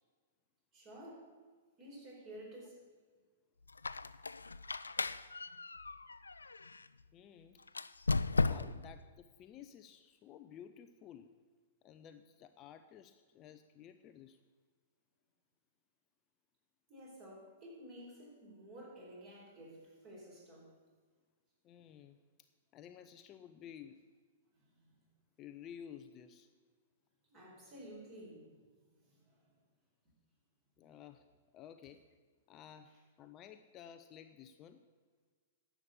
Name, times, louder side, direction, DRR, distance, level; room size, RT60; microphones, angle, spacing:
voice 1, 0.7-1.4 1.8-2.9 16.9-20.8 24.7-24.9 27.3-28.6 29.0-29.5, equal, 30° right, -2 dB, 4.6 m, -52 dB
Squeak, 3.7-6.9 7.7-9.0, left 3 dB, 75° left, 0.3 m, -36 dB
voice 2, 7.1-7.7 8.4-11.3 11.8-14.4 21.6-22.2 22.7-24.1 25.4-26.5 30.8-31.2 31.5-32.1 32.5-34.8, left 9 dB, 30° left, 9 dB, 0.5 m, -54 dB
11.0 x 7.2 x 8.4 m, 1.5 s
figure-of-eight pair, 105°, 0 cm